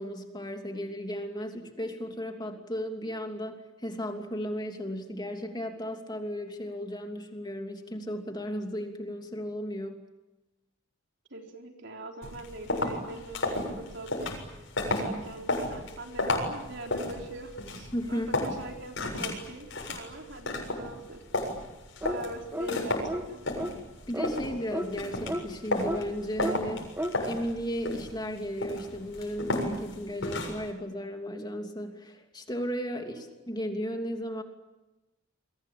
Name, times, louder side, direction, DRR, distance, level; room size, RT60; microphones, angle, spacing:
voice 1, 0.0-10.0 17.9-18.3 24.1-26.9 27.2-34.4, equal, 20° left, 4 dB, 2.9 m, -35 dB
voice 2, 11.3-14.4 14.8-21.5 22.0-23.4 32.9-33.3, right 1 dB, 60° right, 2 dB, 4.4 m, -42 dB
sound 1, 12.2-30.7, left 2 dB, 65° left, 7.3 m, -34 dB
sound 2, 22.0-22.2 22.5-22.7 23.1-23.3 23.6-23.7 24.1-24.3 24.7-24.9 25.3-25.4 25.8-26.0 26.4-26.6 27.0-27.2, equal, 10° right, 2.2 m, -32 dB
29.5 x 23.0 x 8.7 m, 1.0 s
head